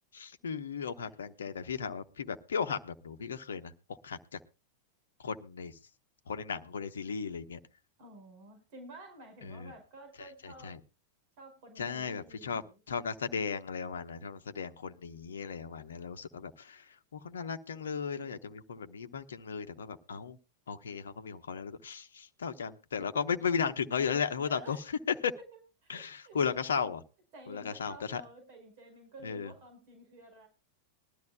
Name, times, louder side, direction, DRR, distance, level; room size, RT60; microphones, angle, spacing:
voice 1, 0.1-4.4 5.2-5.8 6.3-7.6 9.4-9.7 10.2-10.8 11.8-20.4 20.7-25.3 25.9-27.0 27.5-28.2 29.2-29.5, left 6 dB, 65° left, 7 dB, 0.9 m, -36 dB
voice 2, 8.0-10.8 11.4-12.8 24.4-24.9 25.5-26.4 27.3-30.5, right 2 dB, 45° right, 6 dB, 5.1 m, -52 dB
20.5 x 13.0 x 2.3 m, 0.29 s
figure-of-eight pair, 90°, 0 cm